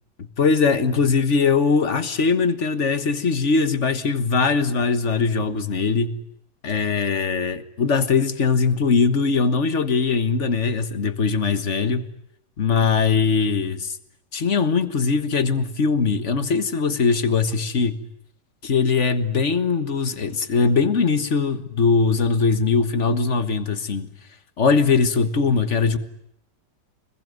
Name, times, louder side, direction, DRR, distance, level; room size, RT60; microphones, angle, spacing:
voice 1, 0.2-6.2 6.6-12.0 12.6-14.0 14.3-18.0 18.6-24.1 24.6-26.0, left 5 dB, 45° left, 1.7 m, -21 dB
25.5 x 21.0 x 9.4 m
omnidirectional pair, 1.9 m